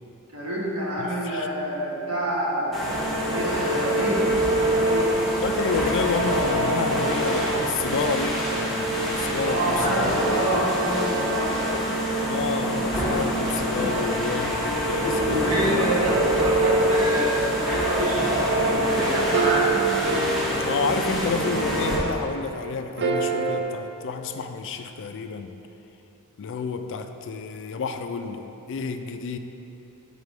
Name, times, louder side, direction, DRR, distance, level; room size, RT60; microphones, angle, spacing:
voice 1, 0.3-2.8 3.2-4.3 4.5-5.1 9.4-11.6 15.2-19.7, right 1 dB, 80° right, -5 dB, 1.5 m, -27 dB
voice 2, 1.0-1.5 5.4-10.2 12.3-15.6 20.6-25.6 26.4-29.4, left 5 dB, 60° left, 8 dB, 0.4 m, -30 dB
sound 1, 2.7-22.0, right 1 dB, ahead, 1.4 m, -25 dB
sound 2, 16.0-22.2 23.0-23.6, right 4 dB, 55° right, 0.6 m, -29 dB
6.7 x 4.8 x 4.7 m, 2.9 s
head